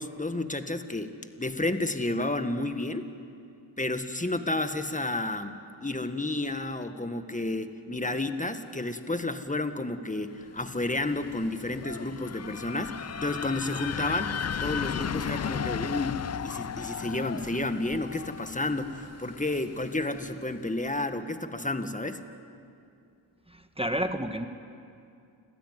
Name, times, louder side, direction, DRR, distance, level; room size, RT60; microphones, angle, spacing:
voice 1, 0.0-3.0 3.8-22.2, left 2 dB, 15° left, 8 dB, 1.7 m, -31 dB
sound 1, 10.6-20.4, left 7 dB, 35° left, 0.5 m, -36 dB
voice 2, 23.5-24.5, equal, 10° right, 7 dB, 1.3 m, -30 dB
29.5 x 13.0 x 9.5 m, 2.5 s
cardioid pair, 45°, 48 cm